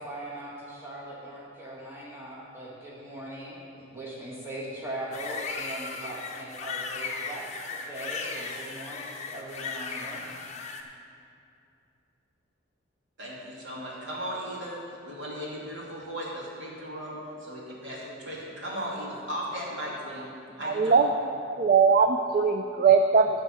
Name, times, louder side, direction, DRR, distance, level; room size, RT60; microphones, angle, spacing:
voice 1, 0.0-10.3, right 1 dB, 10° right, -5 dB, 1.6 m, -40 dB
sound 1, 5.1-10.8, left 4 dB, 35° left, 0.7 m, -36 dB
voice 2, 13.2-20.3 20.6-21.1, equal, 65° right, -5 dB, 2.6 m, -36 dB
voice 3, 20.6-21.1 21.5-23.3, right 5 dB, 45° right, 6 dB, 0.3 m, -20 dB
13.0 x 4.6 x 7.6 m, 2.6 s
head